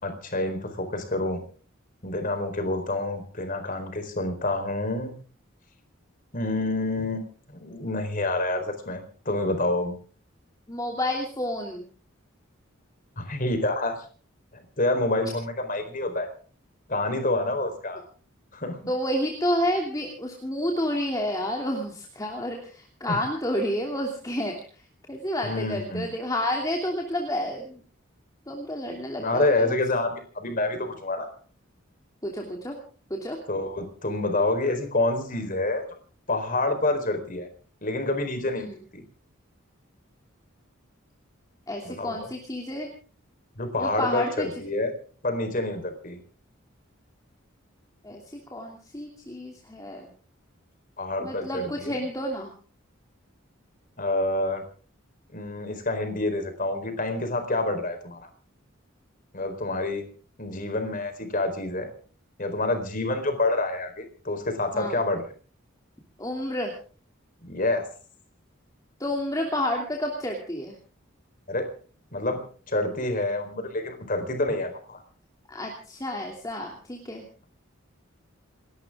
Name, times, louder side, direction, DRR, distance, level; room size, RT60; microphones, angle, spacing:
voice 1, 0.0-1.4 2.0-5.1 6.3-7.2 7.5-9.9 13.2-14.0 14.5-16.3 16.9-18.0 18.5-18.8 23.1-23.2 25.4-26.1 29.2-31.3 33.5-35.8 36.3-37.5 37.8-39.0 41.8-42.3 43.6-44.9 45.2-46.2 51.0-51.9 54.0-54.6 55.3-58.3 59.3-60.0 60.4-61.9 62.4-65.2 67.4-67.8 71.5-71.7 72.1-75.0, left 2 dB, 40° left, 7 dB, 4.3 m, -28 dB
voice 2, 10.7-11.8 18.9-24.8 25.1-27.8 28.5-29.8 32.2-32.7 33.1-33.4 38.6-38.7 41.7-42.9 43.8-44.5 48.0-50.1 51.2-52.5 64.7-65.0 66.2-66.7 69.0-70.8 75.5-77.2, left 1 dB, 15° left, 0 dB, 2.9 m, -30 dB
29.0 x 13.5 x 3.7 m, 0.41 s
head